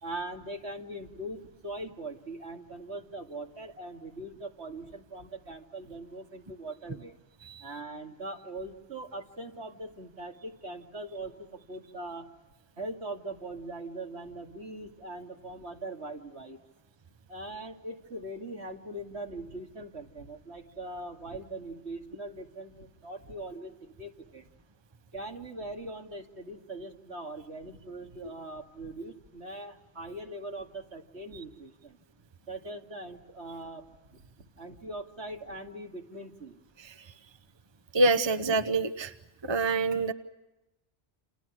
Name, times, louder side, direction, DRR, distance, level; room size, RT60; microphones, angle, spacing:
voice 1, 0.0-7.1 7.6-12.3 12.8-16.6 17.3-24.5 25.1-32.0 32.5-33.9 34.1-36.6, right 2 dB, 70° right, 3 dB, 2.7 m, -41 dB
voice 2, 37.9-39.1 39.4-40.1, right 2 dB, 25° right, 9 dB, 1.0 m, -26 dB
29.5 x 28.0 x 6.2 m, 0.97 s
omnidirectional pair, 1.2 m